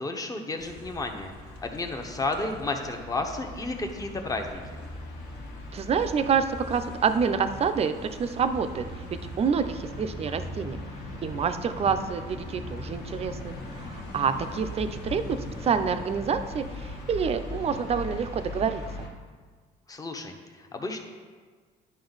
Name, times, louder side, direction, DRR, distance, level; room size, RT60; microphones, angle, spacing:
voice 1, 0.0-1.3 1.6-4.6 19.9-21.0, left 2 dB, 20° left, 4 dB, 0.9 m, -32 dB
sound 1, 0.6-19.1, left 1 dB, 75° left, 1.5 m, -39 dB
voice 2, 5.7-7.9 8.2-8.8 9.4-10.8 11.2-18.8, right 6 dB, 35° right, 9 dB, 0.5 m, -27 dB
10.5 x 5.2 x 4.0 m, 1.5 s
cardioid pair, 110°, 17 cm